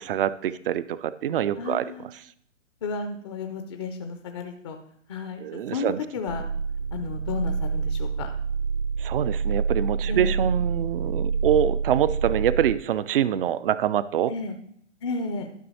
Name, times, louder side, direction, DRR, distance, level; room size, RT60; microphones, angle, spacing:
voice 1, 0.0-1.9 5.4-6.0 9.0-14.3, right 10 dB, 50° right, 16 dB, 0.4 m, -25 dB
voice 2, 1.6-2.1 2.8-4.8 5.1-5.5 5.7-6.4 6.9-8.3 10.1-10.3 14.3-14.6 15.0-15.5, left 4 dB, 25° left, 6 dB, 0.4 m, -32 dB
sound 1, 6.3-12.7, right 5 dB, 65° right, 0.8 m, -27 dB
11.0 x 5.4 x 4.1 m, 0.68 s
figure-of-eight pair, 125°, 37 cm